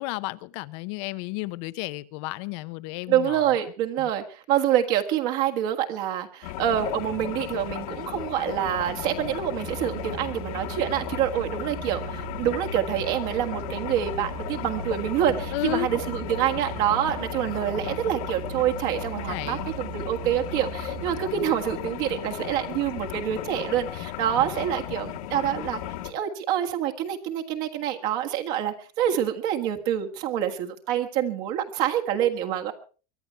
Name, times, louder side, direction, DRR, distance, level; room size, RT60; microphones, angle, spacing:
voice 1, 0.0-3.4 4.0-4.1 15.5-15.9 19.3-19.7, left 20 dB, 50° left, 0.8 m, -32 dB
voice 2, 3.1-32.7, right 10 dB, 50° right, 1.6 m, -26 dB
sound 1, 6.4-26.1, left 12 dB, 70° left, 1.9 m, -35 dB
Musical instrument, 9.5-21.4, right 16 dB, 65° right, 2.5 m, -39 dB
23.5 x 11.0 x 4.5 m
supercardioid pair, 150°, 19 cm